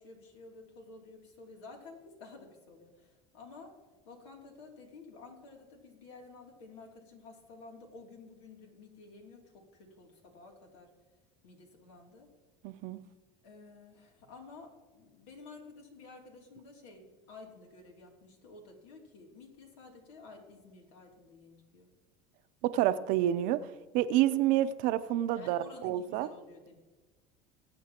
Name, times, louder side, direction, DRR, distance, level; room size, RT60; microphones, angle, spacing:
voice 1, 0.0-3.8 4.0-10.9 11.4-12.3 13.4-21.9 25.3-26.8, left 3 dB, 90° left, 1 dB, 2.9 m, -52 dB
voice 2, 12.6-13.0 22.6-23.6 23.9-26.3, right 13 dB, 65° right, 12 dB, 0.7 m, -28 dB
21.0 x 8.7 x 2.9 m, 1.3 s
supercardioid pair, 125°, 15 cm